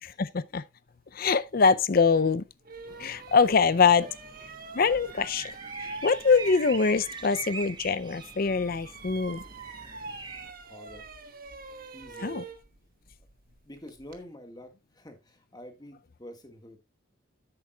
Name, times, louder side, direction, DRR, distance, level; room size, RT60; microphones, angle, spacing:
voice 1, 0.2-0.6 1.1-2.4 3.0-4.0 4.7-5.5 5.8-9.4 12.2-12.4, left 5 dB, 45° left, 0.5 m, -23 dB
sound 1, 2.0-2.1 2.6-7.8 8.1-14.2, right 4 dB, 45° right, 1.1 m, -45 dB
sound 2, 2.9-10.5, right 4 dB, 20° right, 0.8 m, -43 dB
voice 2, 10.6-11.1 11.9-12.4 13.6-16.8, left 1 dB, 20° left, 1.7 m, -47 dB
10.5 x 8.7 x 2.3 m
head